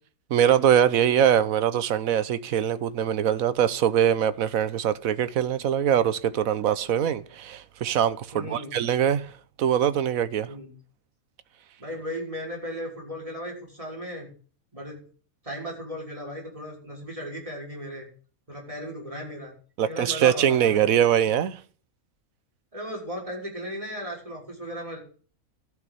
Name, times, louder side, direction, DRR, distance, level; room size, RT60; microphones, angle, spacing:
voice 1, 0.3-9.3 9.6-10.5 19.8-21.6, right 9 dB, 70° right, 1.3 m, -23 dB
voice 2, 8.3-8.7 10.5-10.7 11.8-14.3 14.7-15.0 15.4-18.1 18.5-19.5 19.8-20.9 21.2-21.3 22.7-25.0, equal, 20° right, 6.1 m, -36 dB
13.0 x 7.2 x 9.0 m
omnidirectional pair, 1.5 m